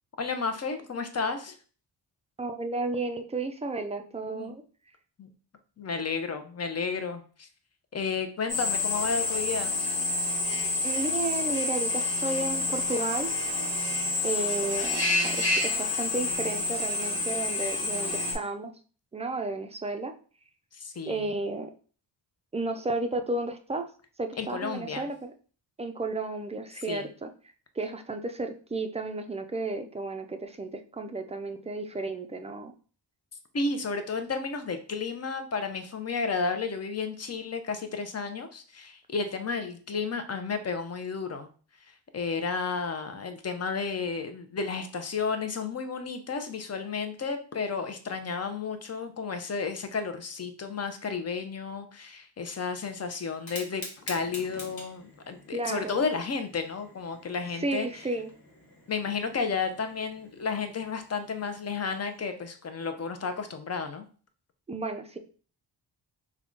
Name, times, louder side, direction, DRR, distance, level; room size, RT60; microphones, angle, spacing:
voice 1, 0.2-1.5 4.3-4.5 5.2-5.3 5.8-7.5 7.9-9.7 20.7-21.4 24.4-25.1 26.9-27.1 33.5-41.5 42.1-58.1 58.9-64.1, left 5 dB, 35° left, 8 dB, 0.6 m, -32 dB
voice 2, 2.4-4.6 10.8-13.3 14.2-18.7 19.1-20.1 21.1-21.7 22.5-23.9 24.2-25.3 25.8-27.3 27.8-32.7 55.5-56.0 57.6-58.3 64.7-65.2, right 2 dB, 15° right, 6 dB, 0.4 m, -33 dB
Drill, 8.5-18.3, left 3 dB, 55° left, 1.5 m, -28 dB
Fire, 53.3-62.2, left 2 dB, 75° left, 1.3 m, -47 dB
3.6 x 2.2 x 3.7 m, 0.40 s
cardioid pair, 75°, 46 cm